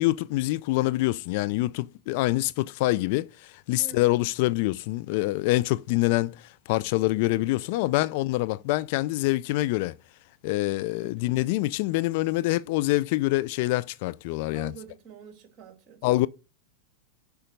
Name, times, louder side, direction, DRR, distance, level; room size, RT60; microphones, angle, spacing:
voice 1, 0.0-6.3 6.7-9.9 10.4-14.7 16.0-16.3, left 19 dB, 55° left, 0.4 m, -25 dB
voice 2, 3.8-4.3 7.7-8.0 11.0-11.6 14.5-16.3, right 6 dB, 35° right, 2.7 m, -47 dB
7.0 x 5.1 x 6.6 m
hypercardioid pair, 100°, 0 cm